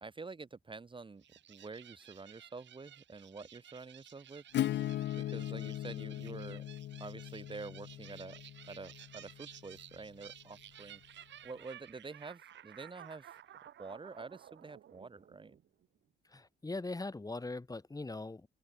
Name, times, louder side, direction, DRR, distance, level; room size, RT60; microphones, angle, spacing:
voice 1, 0.0-4.4 5.2-6.6 7.0-8.4 8.7-11.0 11.4-13.4 13.8-15.6, right 4 dB, 25° right, 1.3 m, -48 dB
sound 1, 1.2-15.9, right 11 dB, 65° right, 1.8 m, -55 dB
Acoustic guitar / Strum, 4.5-10.0, left 13 dB, 65° left, 0.6 m, -39 dB
voice 2, 16.3-18.5, left 2 dB, 20° left, 3.6 m, -41 dB
open air
cardioid pair, 90°, 20 cm